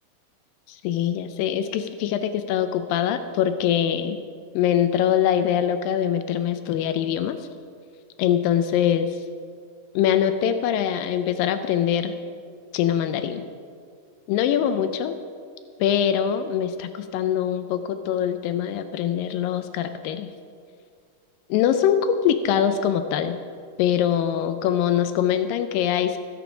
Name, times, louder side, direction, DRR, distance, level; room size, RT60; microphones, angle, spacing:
voice 1, 0.7-4.2 4.5-7.5 8.2-9.2 10.0-12.2 12.7-13.4 14.3-15.2 15.8-20.3 21.5-23.4 23.8-26.2, left 9 dB, 85° left, 9 dB, 2.3 m, -23 dB
16.0 x 6.9 x 6.1 m, 2.2 s
omnidirectional pair, 4.0 m